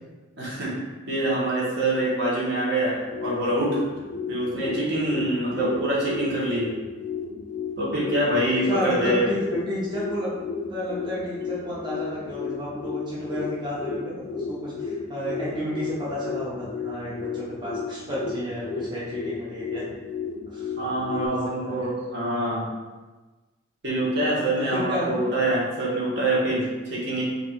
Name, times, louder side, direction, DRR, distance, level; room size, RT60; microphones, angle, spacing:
voice 1, 0.3-0.7 1.1-3.8 4.3-6.7 7.8-9.3 20.8-22.6 23.8-27.2, right 1 dB, 60° right, -6 dB, 1.2 m, -25 dB
sound 1, 2.9-21.3, left 5 dB, 40° left, 0.3 m, -34 dB
voice 2, 8.6-10.3 10.7-19.8 20.5-20.7 21.1-21.9 24.4-25.2, equal, 25° right, -8 dB, 0.7 m, -32 dB
3.1 x 2.5 x 4.3 m, 1.2 s
head